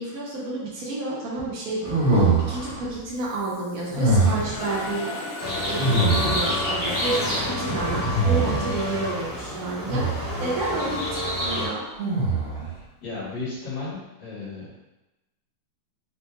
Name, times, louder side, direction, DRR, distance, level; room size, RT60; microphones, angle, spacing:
voice 1, 0.0-5.1 5.7-10.1 10.4-11.8, right 2 dB, 70° right, -6 dB, 0.8 m, -30 dB
sound 1, 1.8-2.8 3.9-4.6 5.8-6.6 7.8-8.8 9.8-10.4 12.0-12.7, right 2 dB, 50° right, 1.8 m, -23 dB
Mechanisms, 3.2-4.2 4.5-8.0, left 1 dB, 80° left, 0.8 m, -33 dB
sound 2, 5.4-11.7, left 1 dB, 15° left, 0.9 m, -29 dB
voice 2, 13.0-14.7, left 3 dB, 55° left, -11 dB, 2.1 m, -34 dB
4.6 x 2.8 x 2.3 m, 1.0 s
omnidirectional pair, 2.4 m